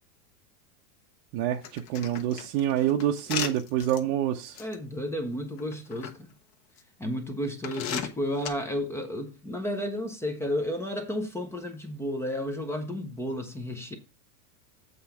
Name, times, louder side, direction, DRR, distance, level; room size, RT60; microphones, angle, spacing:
voice 1, 1.3-4.6, right 11 dB, 35° right, 0.6 m, -27 dB
sound 1, 1.6-4.0 4.5-4.7 5.6-6.1 6.8-6.9 7.6-8.5, left 8 dB, 40° left, 1.1 m, -35 dB
voice 2, 4.6-6.3 7.0-14.0, equal, 5° left, 0.4 m, -32 dB
7.7 x 3.9 x 5.7 m
supercardioid pair, 145°, 49 cm